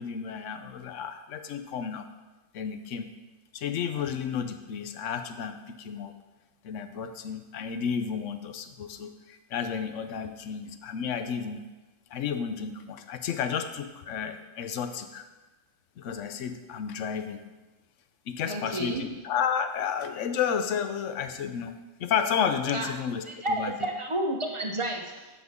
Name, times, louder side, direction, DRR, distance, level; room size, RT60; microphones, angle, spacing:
voice 1, 0.0-2.1 2.5-3.1 3.5-6.1 6.6-11.6 12.1-15.2 16.0-17.4 18.3-21.7 22.0-23.8, left 7 dB, 65° left, 8 dB, 1.0 m, -32 dB
voice 2, 18.5-19.0 22.7-22.9 23.3-25.3, right 1 dB, 25° right, 1 dB, 0.7 m, -31 dB
10.0 x 7.3 x 3.6 m, 1.2 s
omnidirectional pair, 1.5 m